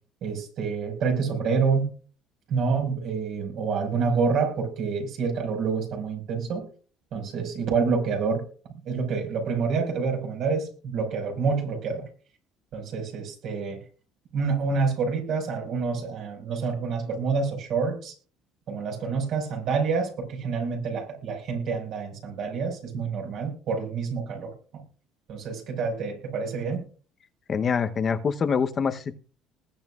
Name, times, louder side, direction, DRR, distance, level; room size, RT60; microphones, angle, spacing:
voice 1, 0.2-1.9 2.5-6.6 7.1-8.4 8.9-12.1 12.7-13.8 14.3-18.1 18.7-24.8 25.3-26.8, right 5 dB, 65° right, 3 dB, 5.3 m, -27 dB
voice 2, 27.5-29.1, left 6 dB, 40° left, 9 dB, 0.9 m, -25 dB
20.0 x 8.8 x 2.4 m, 0.40 s
supercardioid pair, 85°, 0 cm